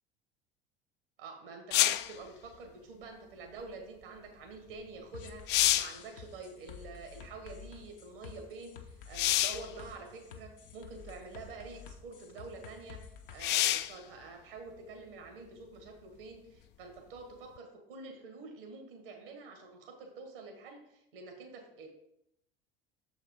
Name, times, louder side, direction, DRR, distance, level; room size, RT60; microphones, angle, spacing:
voice 1, 1.2-21.9, right 3 dB, 70° right, 4 dB, 1.8 m, -47 dB
sound 1, 1.7-2.2 4.8-4.9 5.3-6.0 9.1-9.7 10.7-10.8 13.4-14.0 17.6-17.7, left 14 dB, 40° left, 0.4 m, -27 dB
sound 2, 5.1-13.4, left 7 dB, 65° left, 0.9 m, -50 dB
7.0 x 4.9 x 5.3 m, 0.80 s
figure-of-eight pair, 65°, 29 cm